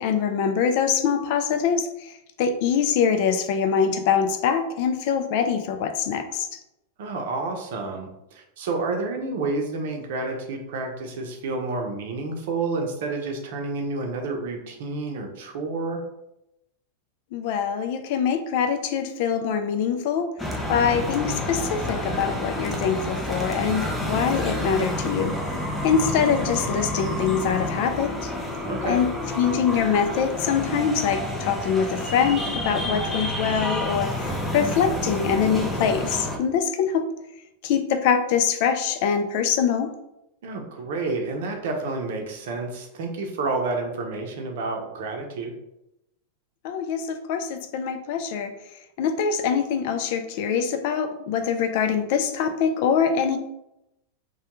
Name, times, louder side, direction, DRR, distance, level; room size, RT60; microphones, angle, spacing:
voice 1, 0.0-6.6 17.3-20.3 20.7-25.4 25.8-28.3 28.8-29.1 29.4-37.1 37.6-39.9 46.6-48.5 49.0-53.4, left 7 dB, 60° left, 7 dB, 0.3 m, -24 dB
voice 2, 7.0-16.0 28.7-29.0 40.4-45.5, right 3 dB, 70° right, 3 dB, 0.6 m, -29 dB
sound 1, 20.4-36.4, left 1 dB, 5° left, 0.5 m, -29 dB
2.2 x 2.2 x 2.9 m, 0.85 s
hypercardioid pair, 115°, 0 cm